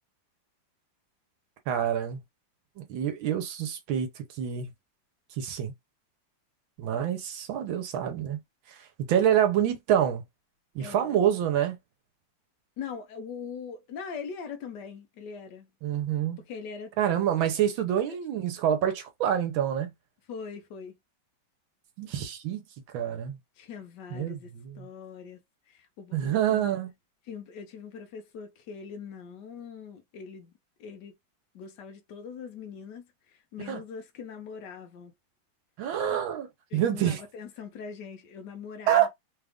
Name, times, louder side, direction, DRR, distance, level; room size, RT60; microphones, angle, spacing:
voice 1, 1.7-2.2 2.8-4.7 5.4-5.7 6.8-8.4 8.7-10.2 10.7-11.8 15.8-16.4 17.0-19.9 22.0-22.6 22.9-23.4 24.1-24.9 26.1-26.9 33.7-33.8 35.8-37.2 38.9-39.1, right 10 dB, 80° right, 1.6 m, -27 dB
voice 2, 10.8-11.2 12.8-15.7 16.4-16.9 18.1-18.2 20.3-21.0 23.6-25.4 25.7-26.7 27.3-30.5 30.8-31.2 31.5-35.1 36.7-39.1, left 6 dB, 65° left, 1.4 m, -42 dB
3.8 x 2.5 x 3.5 m
omnidirectional pair, 2.1 m